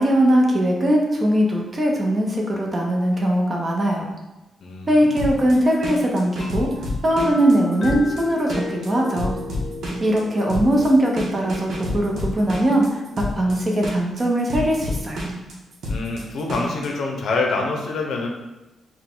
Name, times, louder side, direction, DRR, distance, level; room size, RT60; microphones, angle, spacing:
voice 1, 0.0-4.1 4.9-6.7 7.0-9.4 10.0-13.0 13.4-15.2, right 1 dB, 30° right, -1 dB, 0.8 m, -20 dB
voice 2, 4.6-5.4 15.9-18.3, left 3 dB, 75° left, 1 dB, 0.7 m, -26 dB
sound 1, 5.2-16.9, left 1 dB, 70° right, 0.9 m, -29 dB
sound 2, 6.4-14.1, left 2 dB, 40° left, 0.7 m, -36 dB
4.3 x 2.3 x 3.7 m, 1.0 s
cardioid pair, 120°, 0 cm